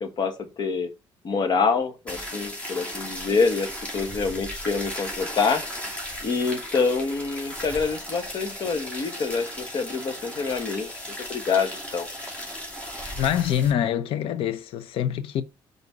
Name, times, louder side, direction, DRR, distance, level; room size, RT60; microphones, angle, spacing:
voice 1, 0.0-0.9 1.2-5.6 6.2-10.9 11.3-12.1, left 4 dB, 50° left, 1.4 m, -26 dB
sound 1, 2.1-13.7, equal, 15° left, 2.5 m, -36 dB
voice 2, 13.1-15.4, left 10 dB, 75° left, 0.7 m, -25 dB
5.3 x 4.0 x 4.5 m
cardioid pair, 115°, 9 cm